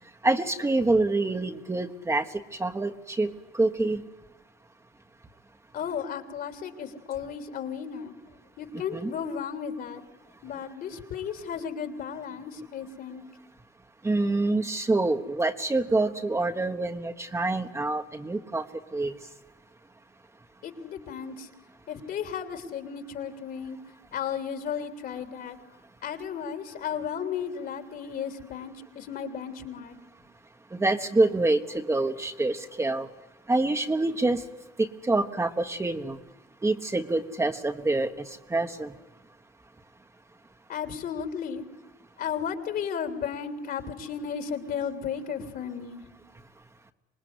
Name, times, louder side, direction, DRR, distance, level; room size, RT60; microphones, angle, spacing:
voice 1, 0.2-2.2 2.6-4.0 8.7-9.1 14.0-18.7 18.9-19.1 30.7-33.1 33.5-34.4 34.8-36.2 36.6-38.9, right 2 dB, 15° right, 6 dB, 1.4 m, -26 dB
voice 2, 5.7-8.1 8.6-10.0 10.4-13.2 20.6-21.5 21.9-23.8 24.1-25.6 26.0-30.0 40.7-41.6 42.2-46.0, left 7 dB, 65° left, 8 dB, 3.3 m, -34 dB
26.0 x 20.0 x 9.8 m, 1.0 s
cardioid pair, 110°, 17 cm